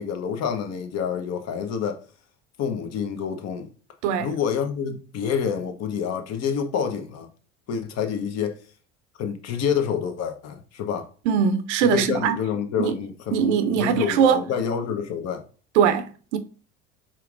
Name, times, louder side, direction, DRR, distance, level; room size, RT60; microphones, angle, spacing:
voice 1, 0.0-2.0 2.6-3.7 4.2-7.3 7.7-8.6 9.2-11.1 11.8-15.5, left 7 dB, 45° left, 0.9 m, -28 dB
voice 2, 11.3-12.4 12.8-12.9 13.3-14.4 15.8-16.4, right 7 dB, 75° right, 0.6 m, -21 dB
4.4 x 3.6 x 2.4 m
hypercardioid pair, 80°, 35 cm